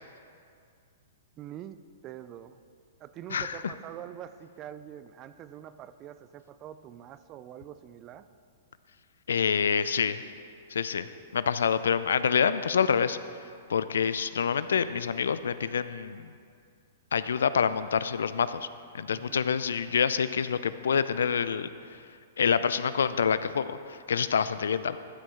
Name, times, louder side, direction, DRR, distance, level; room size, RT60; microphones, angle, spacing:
voice 1, 1.4-2.6 3.0-8.3 19.1-19.5, right 11 dB, 35° right, 13 dB, 0.4 m, -45 dB
voice 2, 3.3-3.7 9.3-10.2 10.7-11.1 11.3-13.2 13.7-16.3 17.1-18.7 18.9-21.7 22.4-25.0, left 7 dB, 80° left, 14 dB, 0.3 m, -27 dB
12.5 x 6.5 x 3.7 m, 2.3 s
hypercardioid pair, 120°, 0 cm